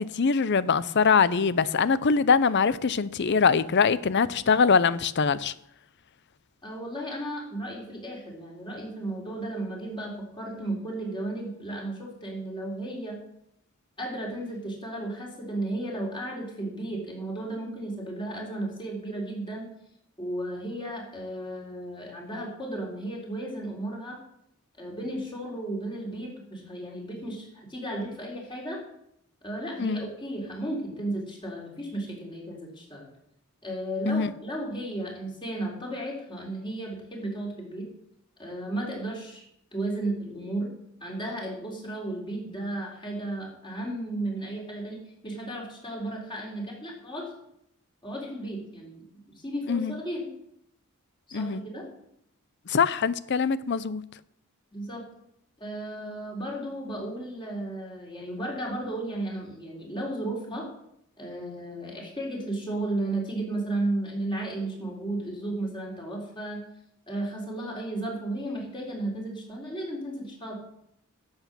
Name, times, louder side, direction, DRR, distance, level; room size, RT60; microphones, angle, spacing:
voice 1, 0.0-5.5 29.8-30.0 34.1-34.3 49.7-49.9 51.3-51.6 52.7-54.0, left 5 dB, 55° left, 0.6 m, -23 dB
voice 2, 6.6-13.2 14.0-19.7 20.2-24.2 24.8-28.8 29.4-33.1 33.6-37.9 38.4-39.4 39.7-40.7 41.0-47.3 48.0-49.0 49.4-50.3 51.3-51.9 54.7-55.0 55.6-60.7 61.2-66.6 67.1-70.5, right 1 dB, 20° left, 4.1 m, -34 dB
12.0 x 8.1 x 6.9 m
head